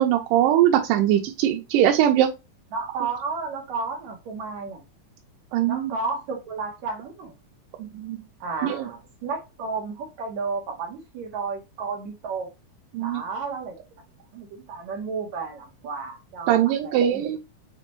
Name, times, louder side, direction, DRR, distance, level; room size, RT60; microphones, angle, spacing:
voice 1, 0.0-2.3 5.5-5.9 7.8-8.2 8.6-8.8 12.9-13.2 16.5-17.4, right 11 dB, 90° right, 2.2 m, -21 dB
voice 2, 2.7-4.8 5.7-7.3 8.4-12.5 13.0-13.8 14.3-17.3, right 4 dB, 70° right, 2.0 m, -32 dB
6.1 x 2.2 x 2.9 m
omnidirectional pair, 3.7 m